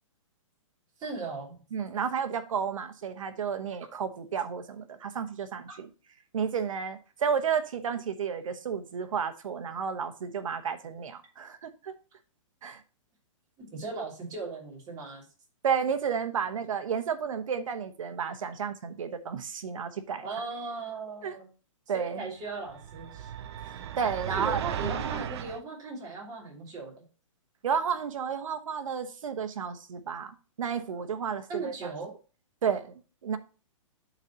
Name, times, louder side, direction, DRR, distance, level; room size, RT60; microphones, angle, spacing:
voice 1, 1.0-1.5 5.7-5.8 13.6-15.2 20.2-21.5 21.9-23.3 24.3-26.9 31.5-32.1, right 3 dB, 20° right, -3 dB, 3.0 m, -37 dB
voice 2, 1.7-5.9 6.3-11.9 12.6-12.8 15.6-20.2 21.2-21.3 21.9-22.2 23.6-24.9 27.6-31.9 32.6-32.9 33.2-33.4, right 7 dB, 75° right, 10 dB, 1.1 m, -32 dB
sound 1, 22.7-25.6, right 9 dB, 55° right, 0.5 m, -36 dB
11.5 x 4.1 x 2.9 m, 0.36 s
hypercardioid pair, 145°, 17 cm